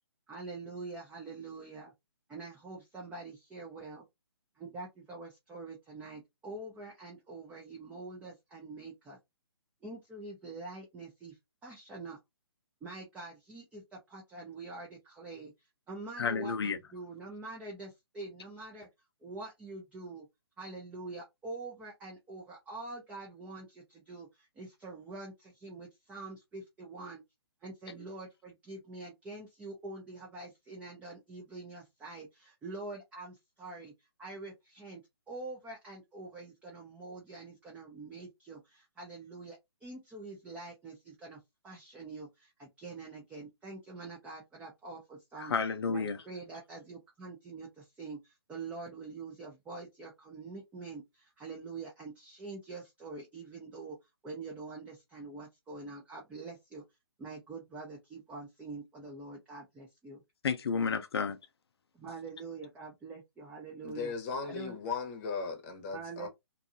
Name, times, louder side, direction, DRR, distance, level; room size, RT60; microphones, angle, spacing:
voice 1, 0.3-1.9 2.3-4.0 4.6-9.2 9.8-11.4 11.6-12.2 12.8-15.5 15.9-18.9 19.2-20.3 20.6-27.2 27.6-45.5 45.9-54.0 54.2-56.8 57.2-60.2 61.9-64.1 64.5-64.8 65.9-66.3, right 3 dB, 10° right, 0.5 m, -45 dB
voice 2, 16.2-16.8 45.4-46.2 60.4-61.4, left 5 dB, 70° left, 0.5 m, -31 dB
voice 3, 63.8-66.3, left 5 dB, 30° left, 0.9 m, -37 dB
2.7 x 2.3 x 2.6 m
hypercardioid pair, 140°, 14 cm